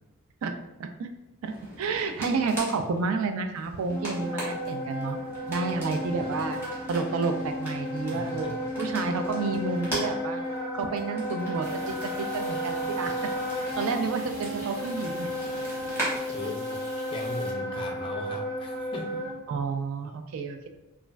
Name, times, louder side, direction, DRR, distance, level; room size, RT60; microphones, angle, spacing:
sound 1, 1.4-16.2, right 1 dB, 10° right, 1.0 m, -40 dB
voice 1, 1.8-5.2 5.5-6.6 6.9-10.4 10.7-13.1 13.5-15.3 19.5-20.7, right 4 dB, 70° right, 6 dB, 0.3 m, -30 dB
Wind instrument woodwind instrument, 3.9-19.4, equal, 90° right, 0.9 m, -33 dB
voice 2, 8.1-8.7 16.3-16.9 17.1-19.4, left 2 dB, 25° left, 1 dB, 0.3 m, -38 dB
sound 2, 11.6-17.5, equal, 35° right, 1.0 m, -47 dB
3.0 x 2.4 x 2.2 m, 1.0 s
head